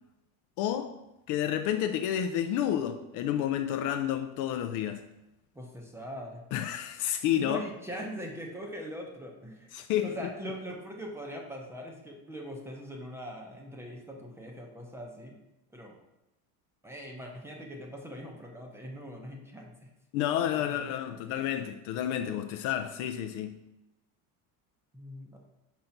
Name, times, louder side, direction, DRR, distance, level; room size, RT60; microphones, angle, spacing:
voice 1, 0.6-1.0 1.3-5.1 6.5-7.6 9.7-10.2 20.1-23.6, left 10 dB, 50° left, 0.4 m, -30 dB
voice 2, 5.5-6.4 7.4-9.8 10.0-15.4 15.7-15.9 16.8-19.9 20.5-21.2 24.9-25.4, equal, 5° right, 0.7 m, -42 dB
5.6 x 3.9 x 5.7 m
cardioid pair, 165°, 39 cm